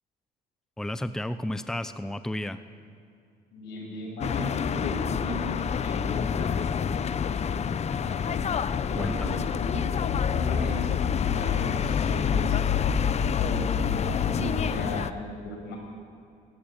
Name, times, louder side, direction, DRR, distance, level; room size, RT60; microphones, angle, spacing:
voice 1, 0.8-2.6 8.9-9.5, left 1 dB, 5° left, 12 dB, 0.8 m, -32 dB
voice 2, 3.5-6.5 8.0-8.5 8.7-9.9 10.3-12.6 13.4-15.8, left 1 dB, 80° left, 0 dB, 7.5 m, -37 dB
sound 1, 4.2-15.1, left 7 dB, 40° left, 0.9 m, -27 dB
22.0 x 17.0 x 8.8 m, 2.5 s
cardioid pair, 110°, 17 cm